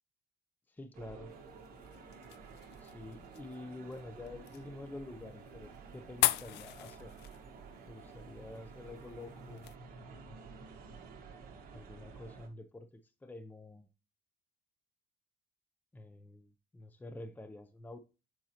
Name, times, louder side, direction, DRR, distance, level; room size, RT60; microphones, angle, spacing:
voice 1, 0.7-1.3 2.8-7.1 7.8-9.7 11.7-13.9 15.9-18.0, left 2 dB, 10° left, 0.6 m, -48 dB
sound 1, 0.9-12.5, right 5 dB, 60° right, 1.9 m, -52 dB
sound 2, 1.3-9.8, left 16 dB, 80° left, 0.4 m, -40 dB
7.6 x 5.4 x 2.9 m
cardioid pair, 110°, 17 cm